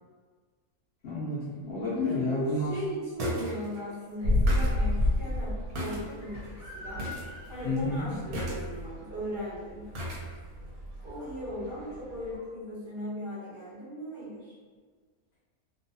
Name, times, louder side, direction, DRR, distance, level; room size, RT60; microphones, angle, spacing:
voice 1, 1.0-2.7 7.6-8.1, left 2 dB, 75° left, -7 dB, 0.6 m, -30 dB
voice 2, 2.0-7.1 7.5-9.9 11.0-14.5, equal, 40° right, -11 dB, 1.1 m, -38 dB
sound 1, 2.0-2.1 3.2-3.5 3.8-3.9 4.2-6.0 6.4-6.5 7.0-7.2 7.5-7.8 8.3-8.9 9.9-10.2 10.6-10.7, left 1 dB, 75° right, 1.1 m, -27 dB
sound 2, 4.3-12.4, equal, 40° left, 1.0 m, -46 dB
2.6 x 2.2 x 2.6 m, 1.5 s
omnidirectional pair, 1.6 m